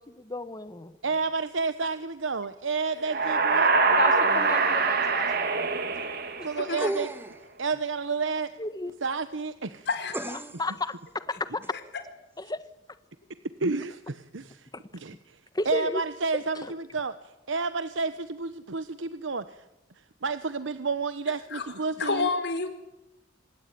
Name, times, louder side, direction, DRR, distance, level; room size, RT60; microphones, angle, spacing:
voice 1, 0.0-0.9 4.0-5.4 5.7-5.9 6.4-6.5 8.6-8.9 10.3-10.9 11.3-11.7 12.4-12.6 15.5-16.0 16.6-16.7, left 2 dB, 20° left, 13 dB, 1.4 m, -33 dB
voice 2, 1.0-3.7 6.4-7.1 7.6-8.5 9.0-9.9 13.6-14.7 14.9-15.4 15.6-17.2 17.5-19.6 20.2-22.3, right 4 dB, 80° right, 12 dB, 1.0 m, -30 dB
sound 1, 3.0-6.9, right 4 dB, 55° right, 2.9 m, -24 dB
sound 2, 6.8-7.4 10.1-10.7 11.6-11.7, right 1 dB, 10° right, 1.5 m, -33 dB
voice 3, 9.9-10.3 11.7-11.8 21.5-21.6 22.0-22.7, left 4 dB, 65° left, 9 dB, 4.2 m, -29 dB
26.0 x 20.0 x 9.3 m, 0.94 s
head